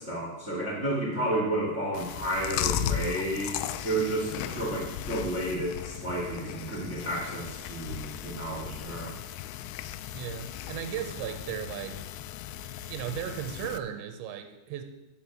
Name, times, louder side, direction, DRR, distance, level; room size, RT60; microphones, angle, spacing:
voice 1, 0.0-3.5 3.8-9.1, right 1 dB, 40° right, -4 dB, 0.9 m, -31 dB
Chewing mastication, 1.9-13.8, left 10 dB, 85° left, 2.8 m, -36 dB
voice 2, 10.1-12.0 12.9-14.8, right 9 dB, 80° right, 7 dB, 3.1 m, -36 dB
10.0 x 6.8 x 6.0 m, 1.0 s
omnidirectional pair, 5.3 m